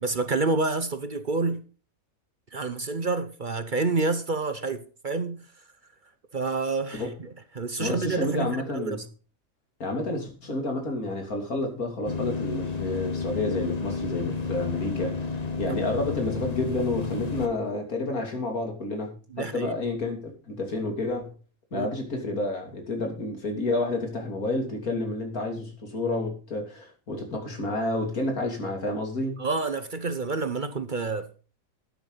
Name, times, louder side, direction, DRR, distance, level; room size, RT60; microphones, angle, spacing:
voice 1, 0.0-1.6 2.5-5.5 6.3-9.0 19.3-19.7 21.7-21.9 29.4-31.3, right 3 dB, 40° right, 1.0 m, -28 dB
voice 2, 7.8-9.0 9.8-21.3 21.7-29.4, left 2 dB, 90° left, 3.4 m, -30 dB
sound 1, 12.0-17.5, left 4 dB, 30° left, 1.1 m, -31 dB
13.0 x 9.7 x 4.0 m
omnidirectional pair, 1.5 m